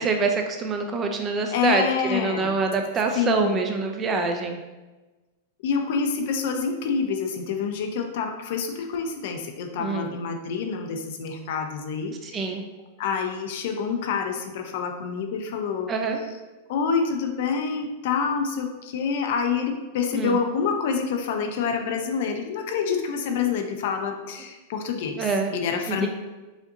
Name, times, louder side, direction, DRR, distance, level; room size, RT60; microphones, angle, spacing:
voice 1, 0.0-1.8 2.1-4.6 9.8-10.1 12.2-12.6 15.9-16.2 20.1-20.4 25.2-25.5 25.9-26.1, right 4 dB, 20° right, 4 dB, 0.3 m, -25 dB
voice 2, 1.5-2.5 3.2-3.6 5.6-12.6 13.0-15.9 16.7-26.1, left 6 dB, 60° left, 5 dB, 0.5 m, -27 dB
5.0 x 2.6 x 2.6 m, 1.2 s
supercardioid pair, 155°, 0 cm